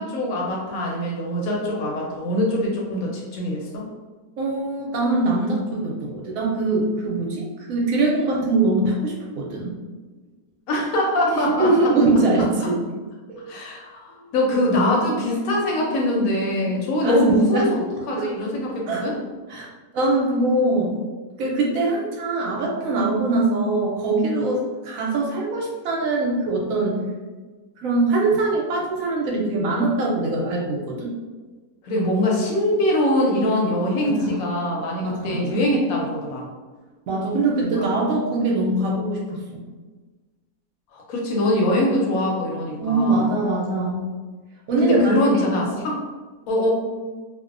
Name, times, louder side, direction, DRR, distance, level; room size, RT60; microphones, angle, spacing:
voice 1, 0.0-3.8 10.7-11.9 12.4-12.5 13.5-19.2 31.8-36.5 37.6-37.8 40.9-43.3 44.8-46.0 46.5-46.7, left 1 dB, 75° left, -2 dB, 1.0 m, -23 dB
voice 2, 4.4-9.8 11.3-12.8 13.3-13.4 17.0-17.7 18.2-18.3 18.9-19.0 19.5-19.7 19.9-20.9 21.4-27.0 27.8-31.1 34.0-34.4 35.0-35.6 37.1-39.7 42.8-44.1 44.7-45.1 45.7-45.8, right 2 dB, 70° right, -2 dB, 0.9 m, -22 dB
2.5 x 2.1 x 2.4 m, 1.3 s
omnidirectional pair, 1.6 m